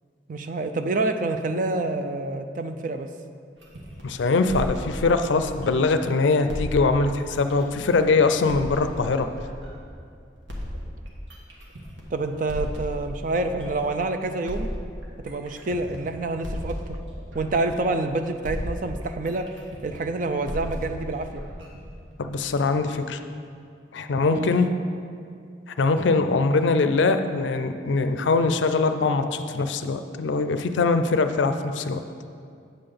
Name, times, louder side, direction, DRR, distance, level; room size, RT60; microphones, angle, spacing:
voice 1, 0.3-3.1 12.1-14.7 15.2-16.9 17.3-19.5 19.8-21.4 24.3-24.5, right 2 dB, 45° right, 7 dB, 0.4 m, -27 dB
sound 1, 3.6-6.0 6.5-10.0 10.5-14.0 14.5-18.1 18.4-22.5, equal, 80° right, 1.4 m, -35 dB
voice 2, 4.0-9.3 22.2-23.2 23.9-24.7 25.8-32.0, left 3 dB, 80° left, 9 dB, 0.4 m, -22 dB
8.8 x 3.8 x 6.7 m, 2.3 s
head